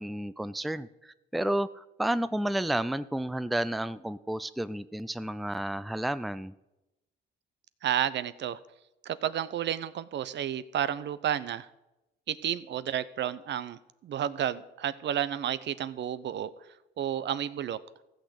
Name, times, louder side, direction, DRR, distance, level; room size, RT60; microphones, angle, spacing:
voice 1, 0.0-6.5, right 1 dB, ahead, 15 dB, 0.4 m, -31 dB
voice 2, 7.8-8.6 9.0-11.7 12.3-16.5 17.0-17.8, right 10 dB, 65° right, 16 dB, 0.7 m, -31 dB
15.0 x 6.5 x 7.9 m, 0.95 s
cardioid pair, 90°, 20 cm